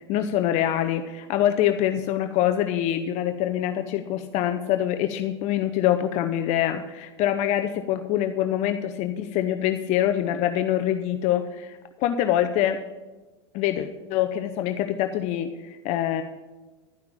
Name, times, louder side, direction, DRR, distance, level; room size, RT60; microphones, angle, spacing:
voice 1, 0.1-12.8 13.5-16.2, left 11 dB, 50° left, 7 dB, 0.7 m, -25 dB
11.5 x 5.8 x 8.8 m, 1.2 s
hypercardioid pair, 105°, 15 cm